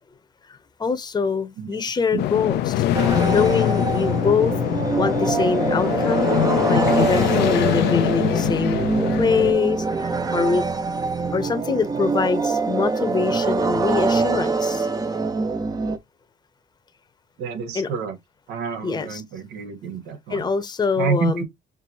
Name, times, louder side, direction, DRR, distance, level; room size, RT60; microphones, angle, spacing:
voice 1, 0.8-2.8 3.2-4.5 5.0-6.4 6.7-8.9 9.2-10.6 11.3-14.9 17.7-17.9 18.8-19.2 20.3-21.4, left 5 dB, 25° left, 0.9 m, -24 dB
sound 1, 2.2-9.5, left 12 dB, 80° left, 0.6 m, -23 dB
sound 2, 2.9-16.0, right 4 dB, 20° right, 0.7 m, -24 dB
voice 2, 17.4-18.2 18.5-20.5 21.0-21.4, right 6 dB, 85° right, 1.5 m, -28 dB
5.4 x 2.7 x 2.8 m
cardioid pair, 110°, 17 cm